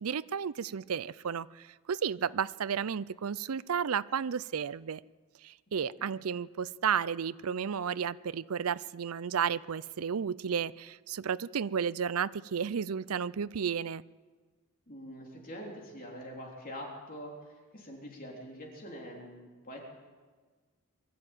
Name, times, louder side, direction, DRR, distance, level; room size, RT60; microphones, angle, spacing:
voice 1, 0.0-5.0 5.4-14.0, right 7 dB, 85° right, 18 dB, 0.5 m, -33 dB
voice 2, 14.9-19.8, equal, 40° left, -1 dB, 3.6 m, -45 dB
23.0 x 13.0 x 9.0 m, 1.4 s
head